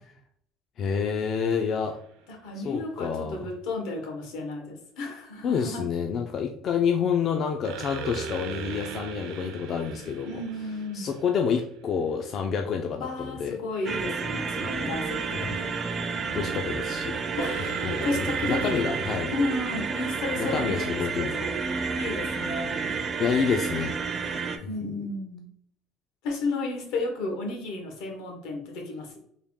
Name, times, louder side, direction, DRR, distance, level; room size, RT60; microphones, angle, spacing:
voice 1, 0.8-2.0 2.6-3.4 5.4-10.4 10.9-13.6 14.6-14.7 16.3-19.3 20.4-21.3 23.2-24.3, left 6 dB, 40° left, 4 dB, 0.3 m, -28 dB
sound 1, 1.3-2.0 7.6-11.8 17.4-19.2, right 6 dB, 85° right, 0.5 m, -38 dB
voice 2, 2.3-5.8 10.3-11.1 13.0-15.5 16.6-16.7 17.4-18.8 19.3-21.6 22.0-22.8 24.7-25.5 26.2-29.2, left 2 dB, 80° left, 1 dB, 1.1 m, -33 dB
sound 2, 13.8-24.6, right 5 dB, 30° right, 0.4 m, -30 dB
3.5 x 2.3 x 3.5 m, 0.68 s
cardioid pair, 135°, 0 cm